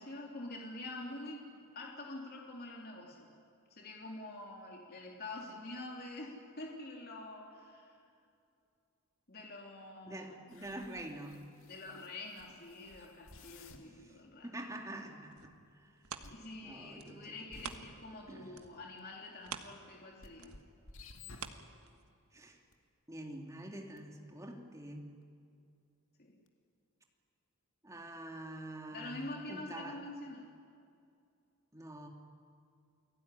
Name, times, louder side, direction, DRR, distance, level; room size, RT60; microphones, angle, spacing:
voice 1, 0.0-3.3 3.7-8.0 9.3-10.4 11.6-14.5 16.3-20.6 26.2-26.3 28.9-30.5, left 2 dB, 45° left, -1 dB, 3.1 m, -46 dB
voice 2, 10.0-11.4 14.4-15.5 16.6-17.3 18.3-18.5 22.3-22.6 23.1-25.1 27.8-30.0 31.7-32.1, right 1 dB, 15° right, 2 dB, 2.5 m, -46 dB
sound 1, 10.5-14.0 15.0-15.1 16.2-16.5 17.5-18.0 19.0-19.1 20.2-21.9 22.7-22.8 24.0-24.1 26.5-26.6, left 3 dB, 65° left, 2.2 m, -55 dB
sound 2, 15.2-18.2 18.5-22.3 22.8-22.9, right 7 dB, 80° right, 1.5 m, -49 dB
29.0 x 18.5 x 9.9 m, 2.4 s
head